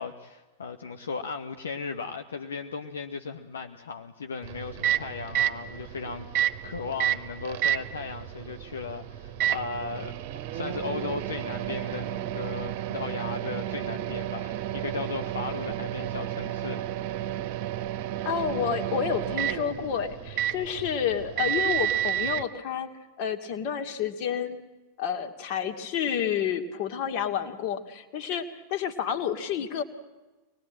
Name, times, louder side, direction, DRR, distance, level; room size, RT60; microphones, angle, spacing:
voice 1, 0.0-10.2 10.5-16.8, left 5 dB, 70° left, 6 dB, 1.0 m, -36 dB
Microwave oven, 4.4-22.4, right 12 dB, 45° right, 1.1 m, -31 dB
voice 2, 18.2-22.9 23.2-24.6 25.0-28.4 28.7-29.8, left 8 dB, 45° left, 6 dB, 2.1 m, -29 dB
24.5 x 20.0 x 8.7 m, 1.2 s
figure-of-eight pair, 90°, 0 cm